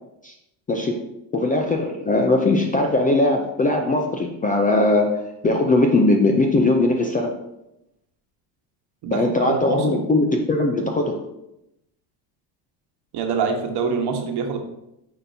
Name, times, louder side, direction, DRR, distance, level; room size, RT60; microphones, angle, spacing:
voice 1, 0.7-1.0 1.3-7.3 9.1-11.2, left 2 dB, 20° left, 3 dB, 0.4 m, -20 dB
voice 2, 9.0-10.1 13.1-14.6, right 5 dB, 50° right, 4 dB, 1.2 m, -25 dB
8.7 x 4.3 x 2.7 m, 0.86 s
cardioid pair, 115°, 49 cm